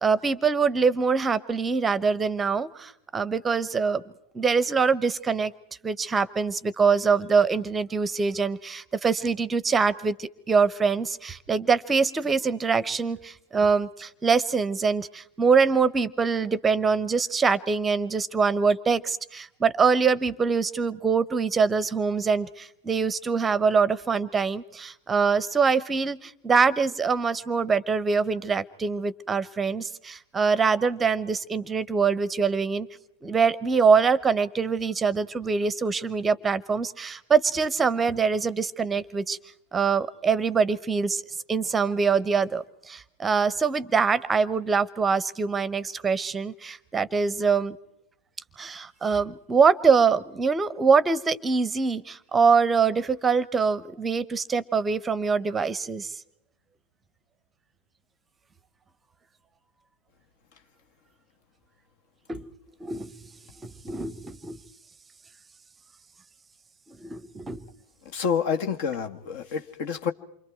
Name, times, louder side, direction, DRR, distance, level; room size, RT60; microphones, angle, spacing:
voice 1, 0.0-4.0 4.3-5.5 5.8-32.9 33.2-39.4 39.7-41.2 41.5-47.8 48.6-56.2 62.3-62.5 62.8-63.1 63.6-64.6 66.9-67.7, right 5 dB, 15° right, 19 dB, 0.9 m, -24 dB
voice 2, 68.1-70.1, left 6 dB, 50° left, 7 dB, 1.5 m, -28 dB
28.5 x 25.0 x 4.6 m, 0.79 s
figure-of-eight pair, 90°, 0 cm